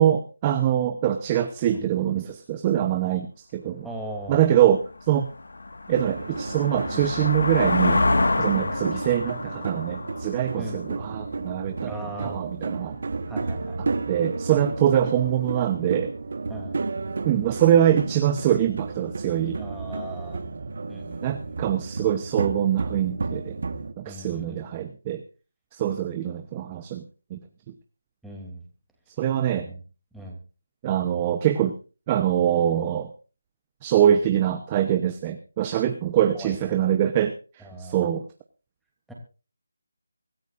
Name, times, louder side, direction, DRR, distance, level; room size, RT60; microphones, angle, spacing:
voice 1, 0.0-3.9 4.3-5.3 5.9-8.0 8.4-11.9 12.2-13.0 14.1-16.1 17.2-19.6 21.2-23.6 24.0-25.2 25.7-27.0 27.3-27.4 29.2-29.7 30.8-31.7 32.1-33.1 33.8-37.3 37.8-38.2, right 10 dB, 15° right, 7 dB, 0.8 m, -23 dB
voice 2, 3.8-4.4 6.9-7.1 8.5-8.7 10.5-10.8 11.9-12.4 13.3-13.8 16.5-16.8 19.6-20.4 20.9-21.6 24.0-24.6 28.2-28.6 29.6-29.8 30.1-30.4 36.3-36.6 37.6-38.1 39.1-39.2, right 1 dB, ahead, -2 dB, 2.9 m, -38 dB
sound 1, 4.2-4.3 4.8-11.4, left 2 dB, 75° left, 1.7 m, -27 dB
sound 2, 5.9-23.9, right 3 dB, 50° right, 1.4 m, -32 dB
24.5 x 13.5 x 2.6 m, 0.35 s
figure-of-eight pair, 170°, 0 cm